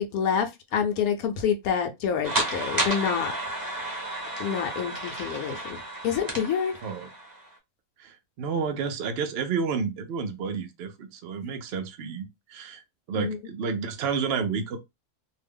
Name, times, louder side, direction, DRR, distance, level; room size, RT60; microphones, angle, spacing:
voice 1, 0.0-3.3 4.4-6.8 13.1-13.4, left 7 dB, 75° left, 1.0 m, -27 dB
sound 1, 2.2-7.5, right 1 dB, 15° right, 0.8 m, -32 dB
voice 2, 8.0-12.8 13.1-14.8, right 5 dB, 70° right, 0.5 m, -30 dB
2.6 x 2.2 x 3.4 m
omnidirectional pair, 1.6 m